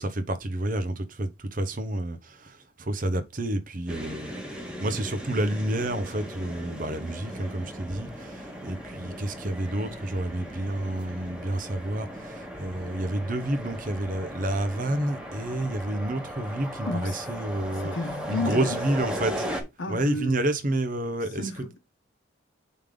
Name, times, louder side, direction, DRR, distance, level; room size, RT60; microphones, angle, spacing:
voice 1, 0.0-19.5 19.9-21.7, right 1 dB, 45° right, 0.9 m, -29 dB
sound 1, 3.9-19.6, equal, 5° right, 1.4 m, -37 dB
voice 2, 16.9-17.2 17.7-18.8 19.8-20.4 21.4-21.8, left 2 dB, 80° left, 1.3 m, -32 dB
5.4 x 3.7 x 5.0 m
head